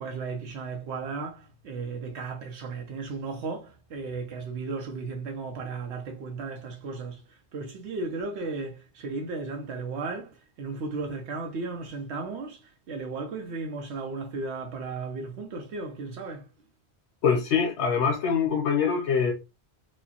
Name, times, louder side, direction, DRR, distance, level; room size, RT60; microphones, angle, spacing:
voice 1, 0.0-16.5, right 4 dB, 85° right, 0.9 m, -35 dB
voice 2, 17.2-19.3, left 6 dB, 85° left, 1.0 m, -24 dB
4.6 x 2.0 x 2.8 m
omnidirectional pair, 1.1 m